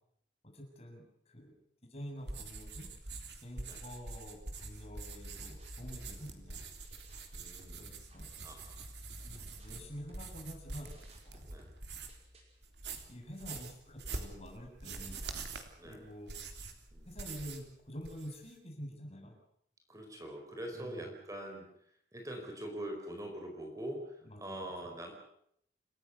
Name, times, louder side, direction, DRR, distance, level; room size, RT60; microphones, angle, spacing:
voice 1, 0.4-2.9 3.4-6.6 7.8-8.3 9.2-11.5 13.1-15.2 15.8-16.6 17.1-19.4 20.7-21.1 24.2-24.7, equal, 35° left, 1 dB, 7.3 m, -48 dB
sound 1, 2.2-12.3 12.6-17.7 18.0-18.5, right 3 dB, 80° right, 3.5 m, -45 dB
sound 2, 4.6-7.3 7.6-12.6, equal, 35° right, 5.4 m, -54 dB
voice 2, 7.3-8.1 8.4-8.9 11.5-11.7 15.8-16.0 16.9-17.2 19.9-25.1, right 1 dB, 20° right, 2 dB, 4.8 m, -44 dB
28.5 x 15.5 x 8.3 m, 0.71 s
head